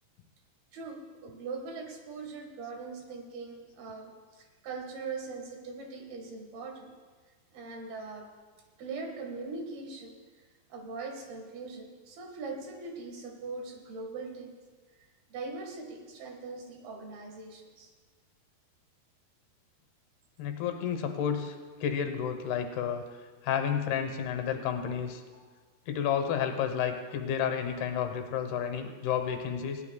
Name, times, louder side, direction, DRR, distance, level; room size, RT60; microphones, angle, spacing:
voice 1, 0.7-6.9 7.5-8.3 8.8-10.2 10.7-14.6 15.3-17.9 25.3-25.4, right 4 dB, 75° right, 3 dB, 3.5 m, -41 dB
voice 2, 20.4-21.6 21.8-23.0 23.4-25.2 25.9-29.8, left 8 dB, 80° left, 6 dB, 3.0 m, -31 dB
20.0 x 16.5 x 2.3 m, 1.4 s
omnidirectional pair, 4.6 m